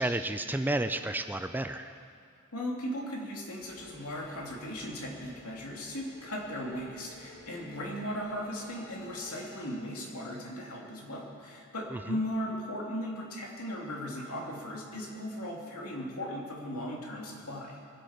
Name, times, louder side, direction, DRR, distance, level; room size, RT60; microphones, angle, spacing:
voice 1, 0.0-1.9 11.9-12.2, right 1 dB, 10° right, 9 dB, 0.4 m, -31 dB
voice 2, 2.5-17.8, equal, 75° left, -2 dB, 2.7 m, -37 dB
sound 1, 3.6-9.7, left 1 dB, 40° left, 4.5 m, -53 dB
22.5 x 8.4 x 5.8 m, 2.2 s
head